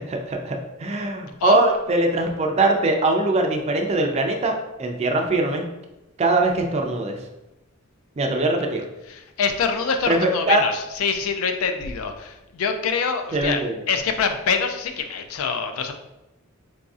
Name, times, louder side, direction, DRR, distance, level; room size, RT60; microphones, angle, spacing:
voice 1, 0.0-5.7 6.2-7.2 8.2-8.9 10.1-10.6 13.3-13.7, right 2 dB, 30° right, 3 dB, 0.4 m, -22 dB
voice 2, 9.1-13.6 13.9-15.9, left 5 dB, 70° left, 6 dB, 0.4 m, -25 dB
3.9 x 2.6 x 2.4 m, 0.94 s
head